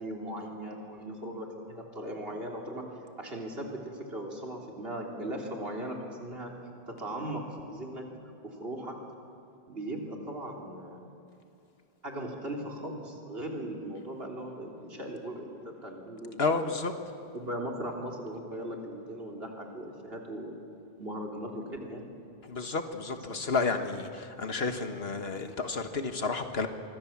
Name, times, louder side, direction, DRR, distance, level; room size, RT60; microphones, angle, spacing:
voice 1, 0.0-2.8 3.2-6.5 6.9-7.4 7.7-8.1 8.4-9.0 9.7-11.0 12.0-16.8 17.3-20.6 21.0-22.1, right 1 dB, 70° right, 0 dB, 3.7 m, -38 dB
voice 2, 16.4-16.9 22.5-26.7, left 4 dB, 80° left, 7 dB, 1.7 m, -31 dB
24.5 x 24.5 x 7.4 m, 2.6 s
omnidirectional pair, 1.0 m